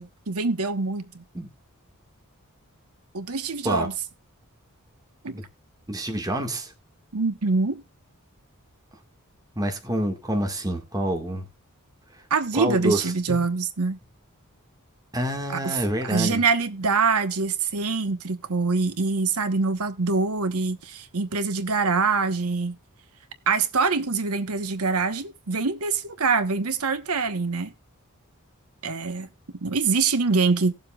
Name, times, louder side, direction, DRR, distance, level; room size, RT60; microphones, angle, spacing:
voice 1, 0.0-1.2 3.1-3.9 5.2-5.4 7.1-7.8 12.3-14.0 15.5-22.8 23.5-27.7 28.8-29.3 29.6-30.7, right 4 dB, 80° right, 1.1 m, -24 dB
voice 2, 5.9-6.7 9.5-11.5 12.5-13.4 15.1-16.4, right 1 dB, 15° right, 1.7 m, -27 dB
18.5 x 7.3 x 2.3 m
head